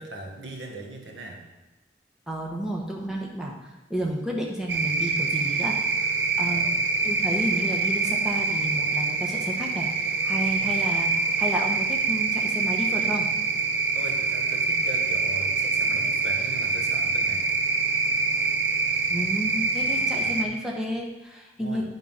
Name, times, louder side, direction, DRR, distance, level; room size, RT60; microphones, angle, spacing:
voice 1, 0.0-1.5 6.4-6.9 10.6-10.8 13.9-17.4 20.2-20.6 21.6-21.8, right 2 dB, 85° right, 0 dB, 1.4 m, -40 dB
voice 2, 2.3-6.7 7.0-11.1 11.4-13.3 19.1-21.8, right 1 dB, 5° right, -2 dB, 1.1 m, -31 dB
sound 1, 4.7-20.4, right 4 dB, 65° right, 0.6 m, -25 dB
9.3 x 3.9 x 5.7 m, 1.1 s
head